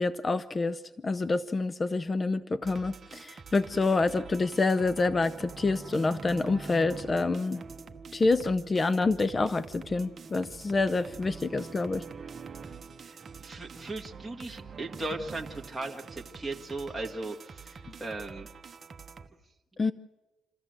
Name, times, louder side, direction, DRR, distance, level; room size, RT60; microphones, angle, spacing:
voice 1, 0.0-7.6 8.1-12.0 17.9-18.0 19.8-19.9, left 3 dB, 30° left, 14 dB, 0.6 m, -27 dB
sound 1, 2.6-19.3, right 5 dB, 40° right, 1.1 m, -45 dB
voice 2, 13.0-18.5, right 2 dB, 10° right, -2 dB, 1.7 m, -38 dB
27.5 x 13.5 x 7.7 m, 1.2 s
cardioid pair, 90°, 0 cm